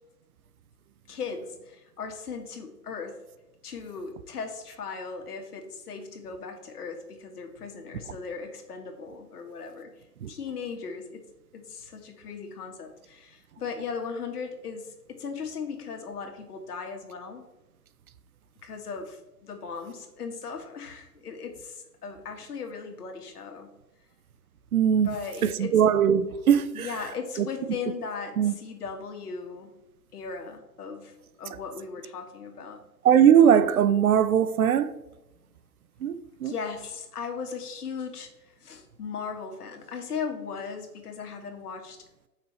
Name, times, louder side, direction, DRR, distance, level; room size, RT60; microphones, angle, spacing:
voice 1, 1.1-3.2 3.6-9.9 10.3-11.2 11.5-17.4 18.6-23.7 25.0-25.8 26.7-29.7 30.1-32.8 36.4-38.3 38.6-42.0, left 5 dB, 65° left, 1.9 m, -37 dB
voice 2, 24.7-25.1 25.4-26.9 27.4-27.5 28.4-28.5 33.0-34.9 36.0-36.5, right 9 dB, 60° right, 0.8 m, -20 dB
7.3 x 6.0 x 4.3 m
hypercardioid pair, 140°, 49 cm